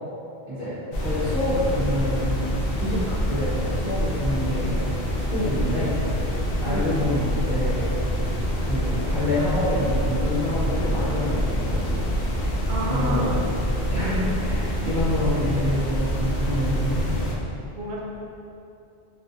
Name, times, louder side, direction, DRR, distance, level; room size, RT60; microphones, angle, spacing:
voice 1, 0.5-4.7 5.3-6.2 6.6-7.8 8.6-12.4 12.9-13.4 13.9-17.2, left 1 dB, 40° right, -16 dB, 1.0 m, -27 dB
sound 1, 0.9-17.3, equal, 65° left, 0.7 m, -26 dB
voice 2, 6.6-7.0 12.7-13.3 14.0-14.6 17.7-18.0, equal, 55° right, -4 dB, 0.7 m, -30 dB
3.6 x 2.4 x 2.6 m, 2.7 s
omnidirectional pair, 1.1 m